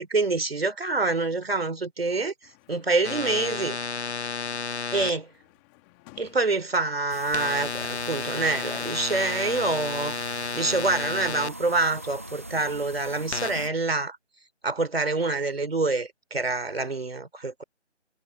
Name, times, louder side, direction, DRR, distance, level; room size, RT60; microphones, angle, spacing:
voice 1, 0.0-2.3 2.7-3.8 4.9-5.3 6.2-10.2 10.5-14.2 14.6-17.6, right 3 dB, 55° right, 3.1 m, -26 dB
sound 1, 2.4-8.8, left 23 dB, 5° left, 2.2 m, -58 dB
sound 2, 3.0-5.1 7.3-11.5 13.3-13.5, left 4 dB, 65° left, 0.9 m, -32 dB
sound 3, 7.1-13.7, right 1 dB, 10° right, 1.0 m, -40 dB
figure-of-eight pair, 165°, 36 cm